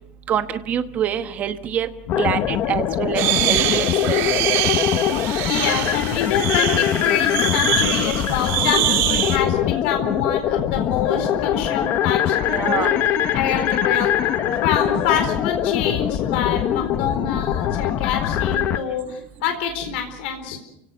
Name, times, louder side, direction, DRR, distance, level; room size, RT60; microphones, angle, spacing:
voice 1, 0.3-1.9 2.2-4.2 12.5-12.9 18.7-18.9, right 9 dB, 25° right, 9 dB, 1.2 m, -25 dB
voice 2, 2.1-2.6 5.5-13.0 13.3-14.1 14.6-20.6, left 8 dB, 70° left, 6 dB, 4.2 m, -26 dB
sound 1, 2.1-18.8, left 10 dB, 35° left, 1.0 m, -22 dB
sound 2, 3.1-9.4, right 13 dB, 50° right, 2.3 m, -24 dB
29.5 x 17.5 x 6.8 m, 0.77 s
cardioid pair, 175°, 6 cm